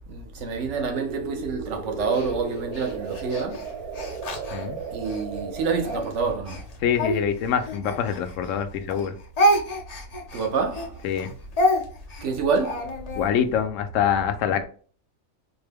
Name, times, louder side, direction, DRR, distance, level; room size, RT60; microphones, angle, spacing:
voice 1, 0.1-3.7 4.9-6.7 10.3-11.0 12.2-13.0, right 4 dB, 60° right, 1.0 m, -27 dB
sound 1, 0.9-6.0, right 5 dB, 90° right, 1.2 m, -35 dB
Speech, 2.1-5.2 5.8-8.6 8.9-13.3, equal, 45° left, 0.5 m, -28 dB
voice 2, 6.8-9.1 11.0-11.3 13.2-14.6, left 8 dB, 70° left, 0.9 m, -25 dB
4.4 x 2.2 x 3.3 m
omnidirectional pair, 1.5 m